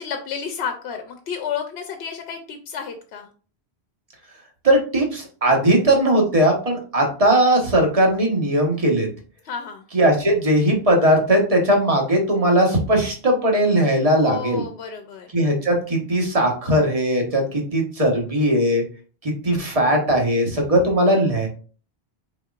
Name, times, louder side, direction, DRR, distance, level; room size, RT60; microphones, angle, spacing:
voice 1, 0.0-3.3 9.4-9.9 14.2-15.4, left 7 dB, 75° left, 5 dB, 0.8 m, -31 dB
voice 2, 4.6-9.1 9.9-14.6 15.3-18.8 19.2-21.5, right 1 dB, 35° right, 1 dB, 1.2 m, -19 dB
4.4 x 3.9 x 2.4 m, 0.39 s
omnidirectional pair, 1.1 m